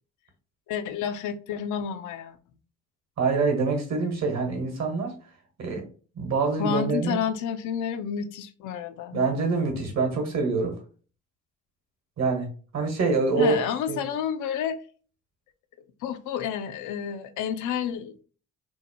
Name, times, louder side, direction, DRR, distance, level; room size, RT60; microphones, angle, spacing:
voice 1, 0.7-2.4 6.6-9.2 13.4-14.8 16.0-18.2, left 8 dB, 65° left, 0.5 m, -30 dB
voice 2, 3.2-5.1 5.6-5.8 6.2-7.2 9.1-10.8 12.2-14.0, right 4 dB, 50° right, 1.1 m, -25 dB
2.8 x 2.0 x 2.7 m
hypercardioid pair, 50°, 34 cm